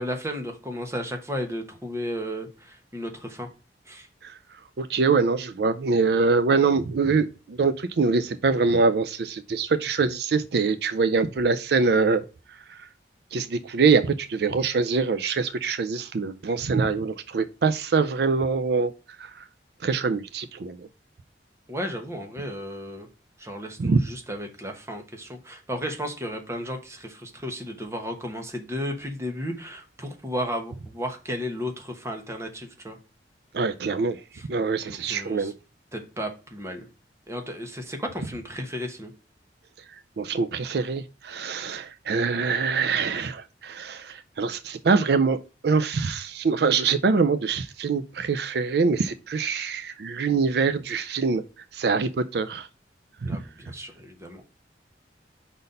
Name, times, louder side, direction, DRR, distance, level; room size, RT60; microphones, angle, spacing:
voice 1, 0.0-3.5 3.9-4.1 21.7-23.1 23.4-33.0 34.3-34.5 34.9-35.5 35.9-36.9 37.3-39.1 53.2-54.4, equal, 15° right, 1.1 m, -34 dB
voice 2, 4.8-12.2 12.7-12.9 13.3-18.9 19.2-19.4 19.8-20.8 23.8-24.0 33.5-34.2 34.5-35.5 40.2-45.4 45.6-51.4 51.7-52.7 53.2-53.4, right 4 dB, 60° right, 0.4 m, -24 dB
5.3 x 4.1 x 5.3 m
head